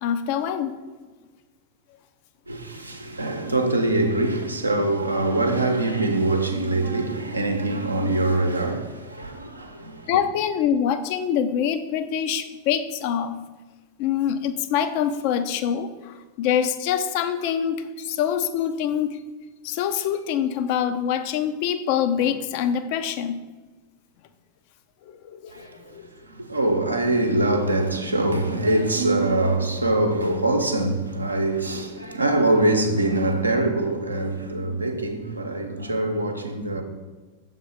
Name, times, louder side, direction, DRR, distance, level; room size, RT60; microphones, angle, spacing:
voice 1, 0.0-0.8 10.1-13.4 14.0-19.2 19.6-23.4 25.1-26.0, left 8 dB, 45° left, 0.5 m, -25 dB
voice 2, 2.5-10.1 25.5-26.0 26.3-36.8, right 2 dB, 80° right, 0.7 m, -23 dB
6.8 x 3.7 x 5.2 m
figure-of-eight pair, 90°, 0 cm